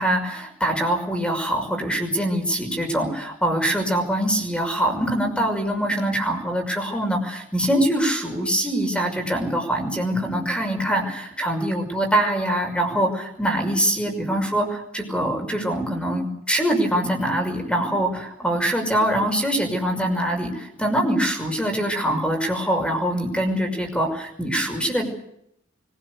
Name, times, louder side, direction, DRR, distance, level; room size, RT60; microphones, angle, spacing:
voice 1, 0.0-25.1, right 1 dB, 5° left, 4 dB, 5.9 m, -23 dB
24.5 x 18.0 x 8.2 m, 0.74 s
head